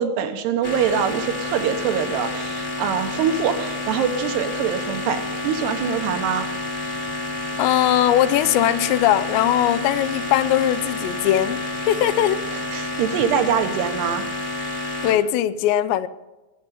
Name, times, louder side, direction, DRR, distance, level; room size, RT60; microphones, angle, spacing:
voice 1, 0.0-6.5 12.5-14.3, right 7 dB, 75° right, 3.0 m, -24 dB
sound 1, 0.6-15.1, left 2 dB, 30° left, 1.2 m, -29 dB
voice 2, 7.6-11.6 11.9-12.4 15.0-16.1, left 12 dB, 85° left, 2.8 m, -20 dB
20.5 x 8.0 x 5.6 m
omnidirectional pair, 5.2 m